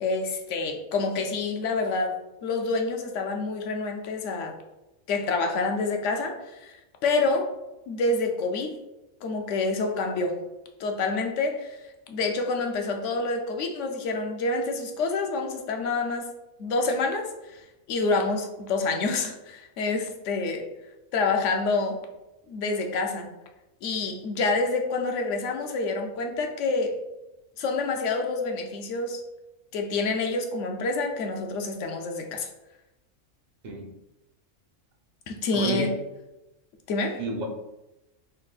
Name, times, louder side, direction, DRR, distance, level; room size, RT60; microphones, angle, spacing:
voice 1, 0.0-2.1 2.4-4.5 5.1-6.8 7.0-7.5 7.9-8.8 9.2-10.4 10.8-11.8 12.1-16.3 16.6-17.6 17.9-20.7 21.1-22.0 22.5-23.3 23.8-27.0 27.6-29.2 29.7-32.5 35.3-35.9 36.9-37.2, left 3 dB, 75° left, 3 dB, 0.9 m, -27 dB
voice 2, 35.5-35.9 37.2-37.4, right 1 dB, 50° right, 1 dB, 0.5 m, -30 dB
3.7 x 3.3 x 2.3 m, 0.97 s
omnidirectional pair, 1.3 m